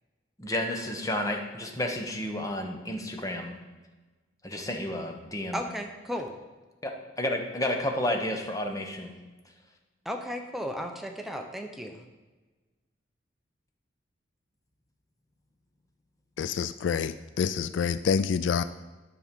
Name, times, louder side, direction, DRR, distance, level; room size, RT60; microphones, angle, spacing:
voice 1, 0.4-3.6 4.4-5.6 6.8-9.1, left 1 dB, 20° left, 3 dB, 1.1 m, -31 dB
voice 2, 5.5-6.3 10.0-12.0, equal, ahead, 3 dB, 0.8 m, -35 dB
voice 3, 16.4-18.6, left 6 dB, 70° left, 13 dB, 0.3 m, -27 dB
10.0 x 6.3 x 5.3 m, 1.2 s
head